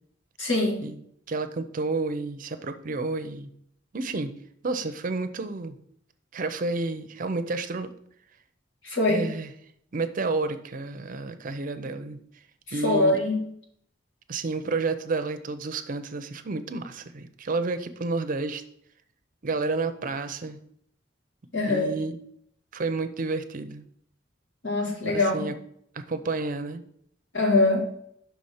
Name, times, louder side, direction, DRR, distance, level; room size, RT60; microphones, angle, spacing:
voice 1, 0.4-0.8 8.8-9.3 12.8-13.4 21.5-21.9 24.6-25.5 27.3-27.9, left 2 dB, 75° left, -1 dB, 2.0 m, -23 dB
voice 2, 1.3-3.5 3.9-4.3 4.6-5.8 6.3-7.9 9.1-9.5 9.9-12.2 12.7-13.2 14.3-18.6 19.4-20.6 21.6-22.2 22.7-23.8 25.1-25.5 25.9-26.8, right 3 dB, 45° right, 10 dB, 0.5 m, -30 dB
5.9 x 4.2 x 6.3 m, 0.69 s
head